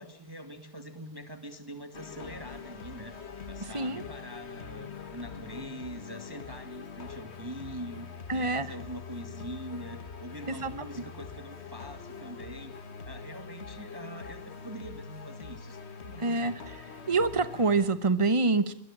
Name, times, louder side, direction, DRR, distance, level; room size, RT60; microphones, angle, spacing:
voice 1, 0.0-3.1 3.5-12.7 13.0-15.8 16.0-16.6, right 1 dB, 10° right, 8 dB, 2.4 m, -43 dB
sound 1, 1.9-17.9, left 5 dB, 35° left, 1.5 m, -44 dB
voice 2, 8.3-8.7 10.5-10.7 16.2-16.8 17.1-18.7, right 3 dB, 35° right, 13 dB, 0.5 m, -26 dB
24.5 x 21.5 x 8.9 m, 0.66 s
omnidirectional pair, 2.4 m